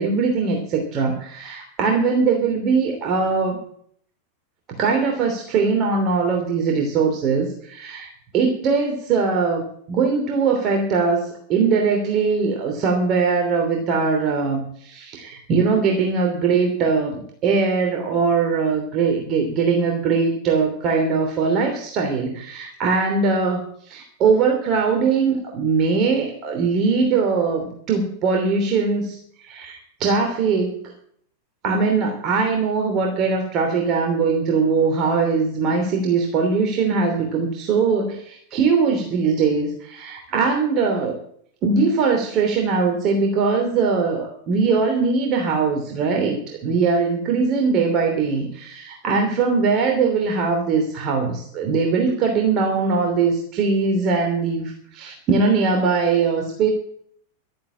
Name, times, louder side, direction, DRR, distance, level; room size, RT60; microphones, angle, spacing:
voice 1, 0.0-3.6 4.8-30.9 31.6-41.2 41.6-56.7, right 4 dB, 35° right, 2 dB, 3.0 m, -21 dB
12.5 x 10.0 x 8.8 m, 0.63 s
figure-of-eight pair, 90°, 0 cm